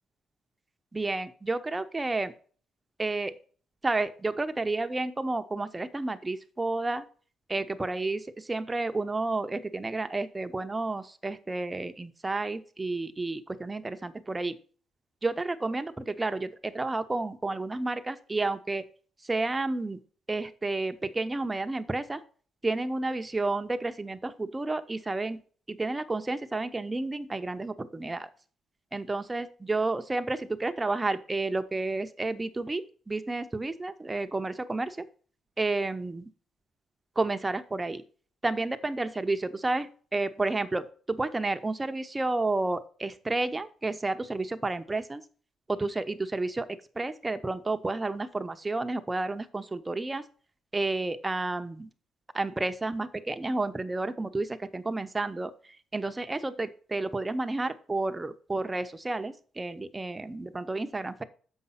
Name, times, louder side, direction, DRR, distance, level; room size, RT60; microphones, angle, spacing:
voice 1, 0.9-2.3 3.0-3.3 3.8-7.0 7.5-14.6 15.2-18.9 19.3-20.0 20.3-22.2 22.6-25.4 25.7-28.3 28.9-35.0 35.6-36.3 37.2-38.0 38.4-45.2 45.7-50.2 50.7-51.9 52.3-55.5 55.9-61.2, right 2 dB, 20° right, 10 dB, 0.8 m, -31 dB
7.2 x 5.5 x 5.7 m, 0.42 s
cardioid pair, 90°, 0 cm